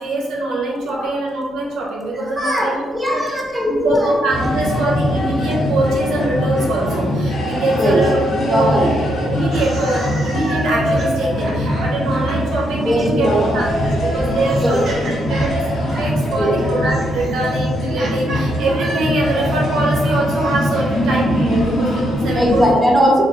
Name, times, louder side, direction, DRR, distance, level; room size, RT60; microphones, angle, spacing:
voice 1, 0.0-2.8 3.1-3.2 3.6-9.0 9.3-13.3 13.5-22.6, right 1 dB, 80° right, -3 dB, 0.9 m, -23 dB
voice 2, 2.2-4.1 4.9-5.1 7.4-8.0 8.5-8.9 12.8-13.7 14.6-14.8 16.3-16.6 22.3-23.2, equal, 10° right, -1 dB, 0.6 m, -19 dB
sound 1, 4.3-22.7, equal, 65° left, 0.9 m, -22 dB
sound 2, 9.4-12.6 13.7-19.6, right 1 dB, 55° right, 1.0 m, -32 dB
2.6 x 2.3 x 3.9 m, 1.4 s
cardioid pair, 90°, 0 cm